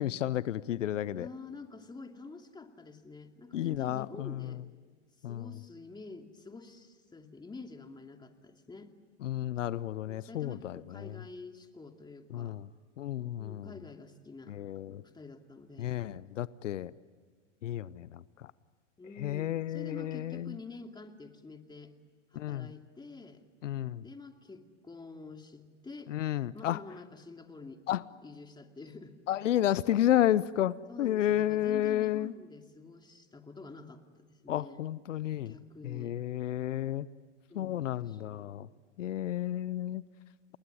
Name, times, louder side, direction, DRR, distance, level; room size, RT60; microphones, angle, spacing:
voice 1, 0.0-1.3 3.5-4.6 5.2-5.5 9.2-11.2 12.3-12.7 13.0-13.7 14.5-15.0 15.8-16.9 17.6-18.5 19.2-20.6 22.3-22.7 23.6-24.0 26.1-26.8 27.9-28.0 29.3-32.3 34.5-35.5 35.8-37.1 37.5-38.7 39.0-40.0, left 12 dB, 90° left, 19 dB, 0.8 m, -31 dB
voice 2, 1.1-4.6 5.3-8.9 9.9-12.6 13.4-14.6 14.9-16.0 19.0-21.9 22.3-23.4 24.0-26.1 26.5-27.8 28.2-29.2 30.9-34.9 35.4-36.2 37.5-38.7, left 3 dB, 10° left, 5 dB, 2.5 m, -48 dB
29.0 x 20.5 x 9.9 m, 1.5 s
hypercardioid pair, 105°, 36 cm